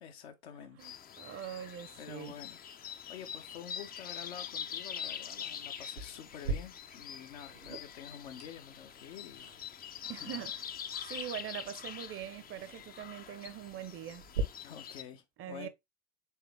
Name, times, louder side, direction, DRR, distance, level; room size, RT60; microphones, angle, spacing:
voice 1, 0.0-1.0 1.3-1.5 2.0-9.5 10.0-10.4 14.6-15.7, left 8 dB, 70° left, 0.9 m, -49 dB
sound 1, 0.8-15.0, left 8 dB, 30° left, 0.5 m, -44 dB
voice 2, 0.8-2.4 10.1-10.5 11.0-14.2 15.4-15.7, right 11 dB, 40° right, 0.7 m, -43 dB
sound 2, 6.0-14.4, right 6 dB, 85° right, 1.2 m, -44 dB
4.7 x 3.4 x 3.3 m
figure-of-eight pair, 60°, 32 cm